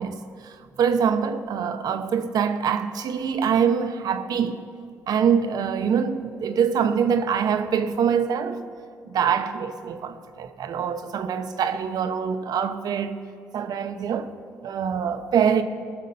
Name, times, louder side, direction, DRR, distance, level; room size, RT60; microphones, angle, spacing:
voice 1, 0.0-4.6 5.1-8.6 9.1-13.2 13.5-14.3 14.6-15.6, right 7 dB, 70° right, 0.8 m, -24 dB
19.0 x 6.5 x 5.4 m
supercardioid pair, 55°, 7 cm